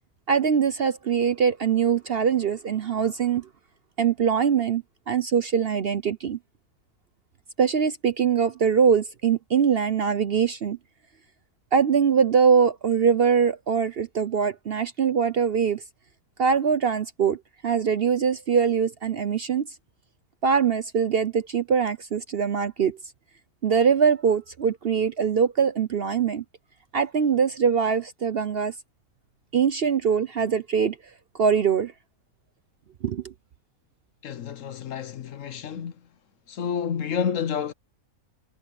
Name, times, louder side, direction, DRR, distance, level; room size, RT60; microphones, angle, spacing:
voice 1, 0.3-3.5 4.0-6.4 7.6-10.8 11.7-15.8 16.4-19.7 20.4-23.0 23.6-26.4 26.9-28.7 29.5-31.0 31.4-31.9 33.0-33.3, right 6 dB, 50° right, 0.8 m, -22 dB
voice 2, 34.2-36.1 36.5-37.7, left 7 dB, 65° left, 1.1 m, -30 dB
omnidirectional pair, 1.6 m